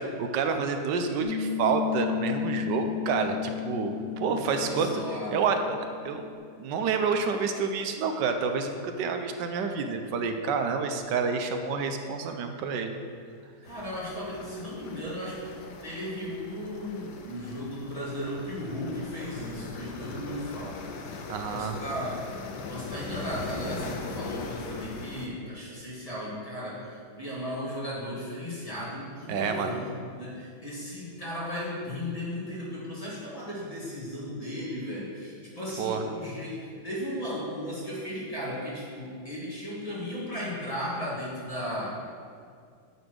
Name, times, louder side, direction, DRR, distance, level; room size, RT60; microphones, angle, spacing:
voice 1, 0.2-4.9 5.3-6.3 6.6-13.0 21.3-21.8 29.3-29.7 35.8-36.0, right 5 dB, 85° right, 6 dB, 1.3 m, -28 dB
Piano, 1.2-6.3, left 11 dB, 30° right, 0.8 m, -34 dB
voice 2, 4.0-5.4 13.6-20.8 21.2-22.2 22.5-41.9, equal, 20° left, -8 dB, 2.2 m, -36 dB
sound 1, 13.7-25.3, left 4 dB, 75° left, 1.3 m, -40 dB
9.5 x 4.3 x 6.3 m, 2.2 s
omnidirectional pair, 1.9 m